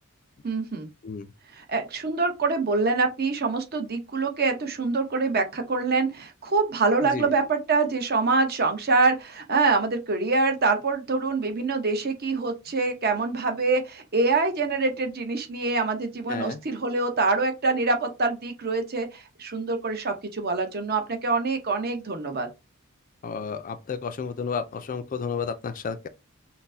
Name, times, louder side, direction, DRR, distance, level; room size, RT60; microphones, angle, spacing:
voice 1, 0.4-0.9 1.5-22.5, right 3 dB, 45° right, 0.8 m, -25 dB
voice 2, 16.3-16.6 23.2-26.1, left 5 dB, 40° left, 0.4 m, -32 dB
5.8 x 2.1 x 2.6 m
head